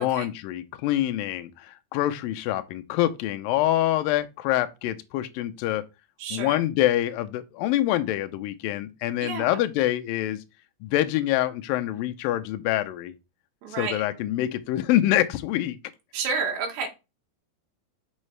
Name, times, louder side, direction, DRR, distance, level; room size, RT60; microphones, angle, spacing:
voice 1, 0.0-5.8 6.3-10.4 10.8-13.1 13.8-15.8, left 14 dB, 85° left, 2.0 m, -25 dB
voice 2, 6.2-6.6 9.2-9.6 13.6-14.1 16.1-16.9, right 5 dB, 85° right, 3.7 m, -30 dB
6.4 x 6.1 x 3.2 m
omnidirectional pair, 4.7 m